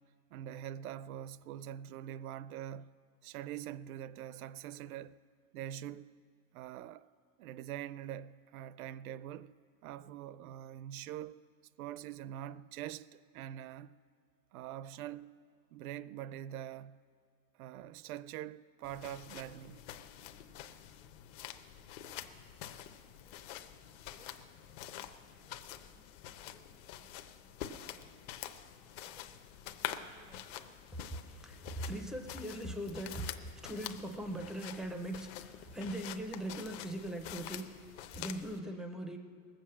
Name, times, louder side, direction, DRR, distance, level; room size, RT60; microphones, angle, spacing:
voice 1, 0.3-2.9 3.2-5.2 5.5-6.1 6.5-7.1 7.4-9.5 9.8-11.4 11.8-14.0 14.5-15.4 15.7-17.0 17.6-19.8, right 11 dB, 75° right, 0.6 m, -44 dB
sound 1, 18.8-38.6, left 11 dB, 50° left, 0.8 m, -47 dB
voice 2, 24.1-28.2 29.1-30.5 30.9-39.2, right 1 dB, ahead, 0.4 m, -43 dB
19.0 x 7.7 x 7.5 m
supercardioid pair, 140°, 43 cm